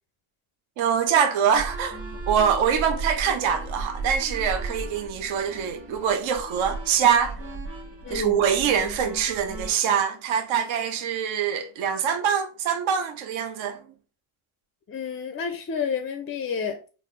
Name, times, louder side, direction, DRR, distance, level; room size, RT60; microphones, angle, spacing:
voice 1, 0.8-2.0 2.3-7.4 8.1-13.8, right 8 dB, 70° right, 0.7 m, -24 dB
sound 1, 1.5-9.7, right 3 dB, 25° right, 1.3 m, -35 dB
voice 2, 8.0-8.4 14.9-16.8, left 6 dB, 30° left, 0.3 m, -30 dB
4.0 x 2.0 x 3.1 m
cardioid pair, 80°, 50 cm